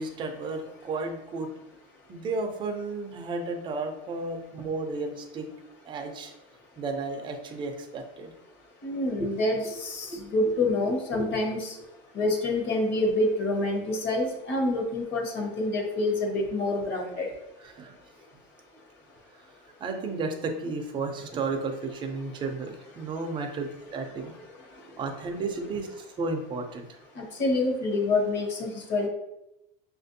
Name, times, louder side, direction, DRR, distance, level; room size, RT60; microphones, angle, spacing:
voice 1, 0.0-1.5 2.1-5.5 5.8-6.3 6.8-8.3 17.6-18.0 19.4-19.5 19.8-24.3 25.0-27.0, right 3 dB, 15° right, 4 dB, 0.4 m, -33 dB
voice 2, 8.8-11.7 12.1-17.3 27.2-29.1, left 2 dB, 35° left, 1 dB, 1.0 m, -27 dB
6.0 x 2.5 x 2.6 m, 0.88 s
supercardioid pair, 150°, 30 cm